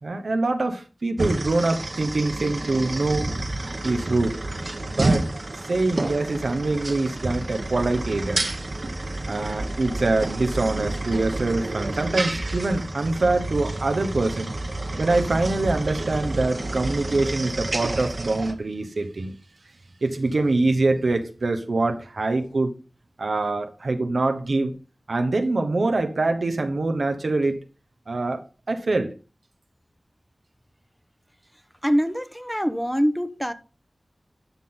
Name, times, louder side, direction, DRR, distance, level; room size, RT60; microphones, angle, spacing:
voice 1, 0.0-3.3 3.8-4.4 4.9-5.3 5.6-8.4 9.3-14.5 15.0-19.3 20.0-22.8 23.2-24.7 25.1-27.6 28.1-29.1, right 2 dB, 90° right, 1.1 m, -24 dB
sound 1, 1.2-18.5, right 2 dB, 60° right, 1.3 m, -29 dB
voice 2, 31.8-33.5, equal, ahead, 0.9 m, -24 dB
12.5 x 6.0 x 3.8 m
wide cardioid pair, 50°, 0 cm